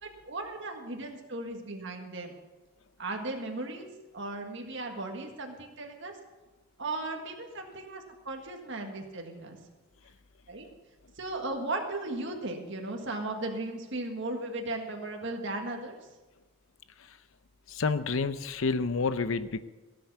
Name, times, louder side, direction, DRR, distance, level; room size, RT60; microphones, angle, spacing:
voice 1, 0.0-2.3 3.0-3.9 4.1-6.2 6.8-9.6 10.5-10.7 11.2-16.0, right 2 dB, 60° right, 2 dB, 1.7 m, -36 dB
voice 2, 17.7-19.6, left 4 dB, 70° left, 13 dB, 0.7 m, -29 dB
17.0 x 7.8 x 6.9 m, 1.2 s
head